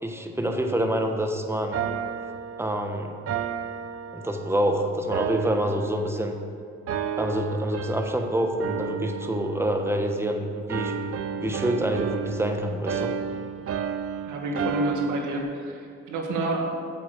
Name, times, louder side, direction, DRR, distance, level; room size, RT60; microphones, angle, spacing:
voice 1, 0.0-1.8 2.6-3.1 4.1-6.3 7.2-11.0 11.4-13.1, right 1 dB, 10° right, 4 dB, 1.2 m, -26 dB
sound 1, 1.7-4.7 5.1-6.4 6.9-8.3 8.6-10.3 10.7-15.4, right 7 dB, 50° right, 0.7 m, -32 dB
voice 2, 14.2-16.7, right 2 dB, 85° right, 1 dB, 1.9 m, -29 dB
8.5 x 8.2 x 6.7 m, 2.3 s
cardioid pair, 90°, 30 cm